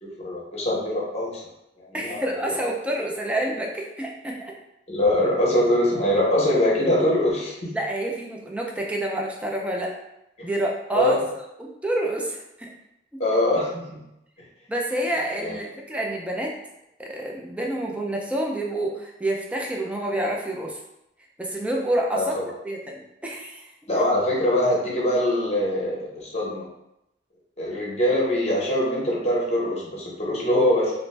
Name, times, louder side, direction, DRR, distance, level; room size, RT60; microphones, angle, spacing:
voice 1, 0.0-1.4 1.8-2.2 2.5-2.6 4.9-7.7 10.9-11.2 13.2-14.0 15.4-15.6 22.1-22.4 23.9-26.7 27.6-30.9, left 1 dB, 35° left, -4 dB, 0.8 m, -23 dB
voice 2, 1.9-4.5 7.7-9.9 10.4-11.1 11.6-12.7 13.1-13.2 14.7-16.5 17.0-20.8 21.4-22.3 22.6-23.7, right 1 dB, 5° right, -1 dB, 0.4 m, -28 dB
2.5 x 2.1 x 3.2 m, 0.86 s
head